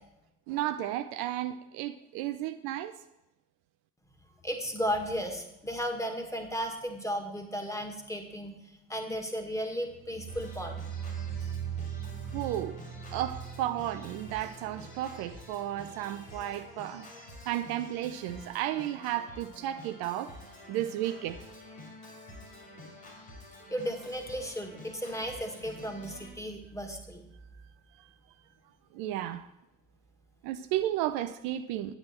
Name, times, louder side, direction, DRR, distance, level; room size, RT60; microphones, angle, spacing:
voice 1, 0.5-2.9 12.3-12.8 13.1-20.3 20.7-21.4 28.9-29.4 30.4-32.0, right 13 dB, 60° right, 0.6 m, -33 dB
voice 2, 4.4-8.6 8.9-10.8 23.7-27.3, equal, 5° left, 1.9 m, -35 dB
sound 1, 9.9-17.0 17.3-17.7 18.1-18.2, right 8 dB, 80° right, 1.2 m, -40 dB
Organ, 10.3-26.3, left 1 dB, 85° left, 2.8 m, -49 dB
10.0 x 9.4 x 4.4 m
figure-of-eight pair, 50°, 41 cm